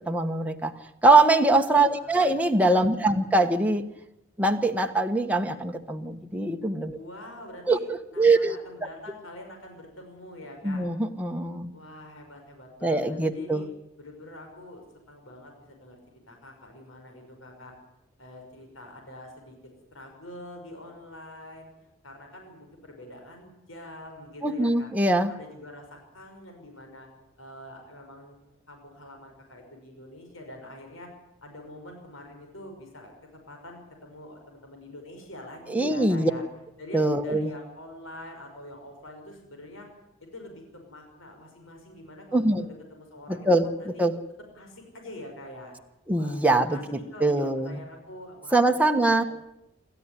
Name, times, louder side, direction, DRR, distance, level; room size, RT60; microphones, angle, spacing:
voice 1, 0.1-0.7 1.0-3.8 4.4-7.0 7.7-7.8 8.2-8.6 10.6-11.7 12.8-13.6 24.4-25.3 35.7-36.3 36.9-37.5 42.3-42.7 43.5-43.6 44.0-44.1 46.1-46.8 47.2-47.7 48.5-49.2, right 2 dB, 5° right, 3 dB, 1.2 m, -22 dB
voice 2, 1.9-2.4 2.9-3.3 6.9-7.8 8.1-10.9 11.7-13.7 14.0-17.7 18.2-19.5 19.9-21.7 22.0-24.9 25.3-27.1 27.4-28.4 28.7-31.1 31.4-36.4 36.8-39.9 40.2-43.5 43.8-44.0 44.5-45.8 46.1-48.6 49.0-49.3, left 1 dB, 75° left, 3 dB, 6.0 m, -45 dB
27.5 x 14.0 x 9.9 m, 0.85 s
head